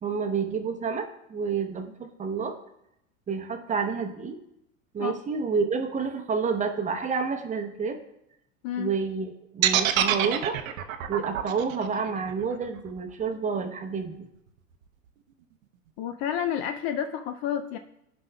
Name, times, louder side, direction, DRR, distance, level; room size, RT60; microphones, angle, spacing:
voice 1, 0.0-2.5 3.3-4.4 4.9-8.0 8.8-10.6 11.1-14.3, right 5 dB, 20° right, 5 dB, 0.8 m, -29 dB
sound 1, 9.6-13.7, right 11 dB, 75° right, 0.8 m, -26 dB
voice 2, 16.0-17.8, left 9 dB, 40° left, 8 dB, 0.4 m, -30 dB
15.5 x 5.2 x 2.3 m, 0.81 s
hypercardioid pair, 110°, 40 cm